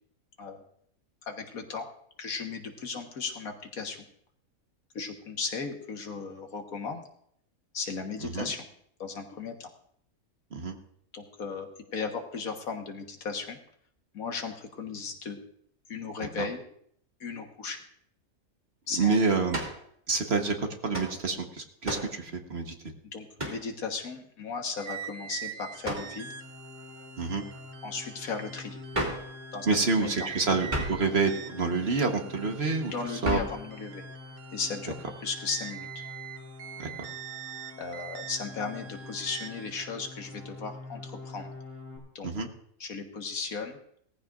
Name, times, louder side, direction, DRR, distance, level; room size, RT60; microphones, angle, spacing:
voice 1, 1.3-1.9 2.2-4.1 4.9-7.1 7.7-8.6 9.0-9.7 11.1-13.6 14.1-15.4 15.9-16.6 17.2-17.8 18.9-19.2 23.1-26.4 27.8-28.8 29.5-30.1 32.9-34.0 34.5-35.0 35.2-36.1 37.8-41.5 42.2-42.3 42.8-43.8, left 5 dB, 75° left, 4 dB, 1.8 m, -36 dB
voice 2, 18.9-19.6 20.1-22.7 27.2-27.4 29.7-33.4 36.8-37.1 42.2-42.5, right 4 dB, 45° right, 4 dB, 1.4 m, -28 dB
sound 1, 19.5-19.8 20.9-21.2 21.8-22.2 23.4-23.7 25.8-26.1 28.9-29.3 30.7-31.1 33.2-33.6, right 1 dB, 30° right, 2.6 m, -32 dB
sound 2, 24.8-39.7, right 9 dB, 80° right, 1.4 m, -44 dB
sound 3, 25.7-42.0, left 3 dB, 10° left, 3.6 m, -46 dB
18.5 x 14.5 x 2.5 m, 0.68 s
omnidirectional pair, 1.5 m